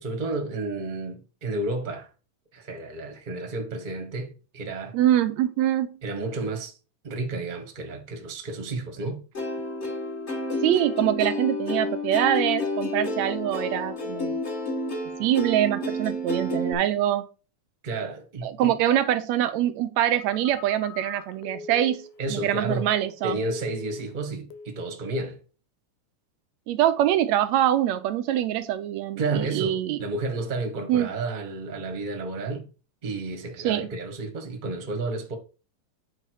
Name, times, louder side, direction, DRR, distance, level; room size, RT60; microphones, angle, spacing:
voice 1, 0.0-2.1 2.5-5.0 6.0-6.8 7.0-9.2 17.8-18.7 22.2-22.9 23.2-25.4 29.2-32.7 33.0-35.4, right 3 dB, 20° right, 1.2 m, -31 dB
voice 2, 4.9-5.9 10.6-14.3 15.2-17.3 18.4-23.4 26.7-30.0 30.9-31.1 33.6-33.9, right 12 dB, 75° right, 1.8 m, -24 dB
Plucked string instrument, 9.3-16.7, left 1 dB, 25° left, 1.7 m, -30 dB
Telephone, 20.2-23.2 23.5-24.2 24.5-24.8, left 4 dB, 85° left, 2.6 m, -42 dB
8.6 x 5.4 x 4.8 m
omnidirectional pair, 3.6 m